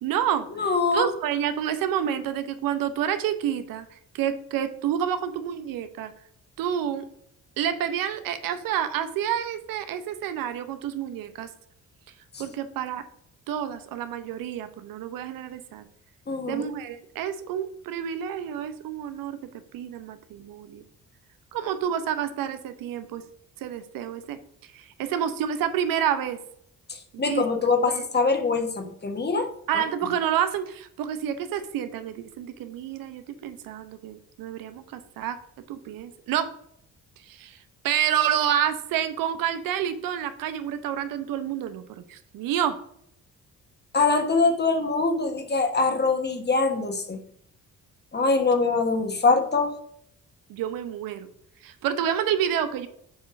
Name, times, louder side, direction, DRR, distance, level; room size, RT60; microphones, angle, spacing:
voice 1, 0.0-0.5 0.9-3.8 4.1-6.1 6.6-7.0 7.6-11.5 12.4-13.0 13.5-15.8 16.5-19.4 19.7-20.8 21.5-23.2 23.6-24.4 24.7-26.4 27.1-27.4 27.9-28.0 29.7-35.4 35.7-36.5 37.3-37.6 37.8-41.8 42.1-42.8 50.5-51.3 51.6-52.9, right 9 dB, 85° right, 10 dB, 0.8 m, -28 dB
voice 2, 0.6-1.1 12.3-12.4 16.3-16.7 26.9-29.5 29.7-29.8 43.9-47.2 48.1-49.7, left 4 dB, 30° left, 5 dB, 1.3 m, -23 dB
7.2 x 3.2 x 5.7 m, 0.68 s
cardioid pair, 75°, 33 cm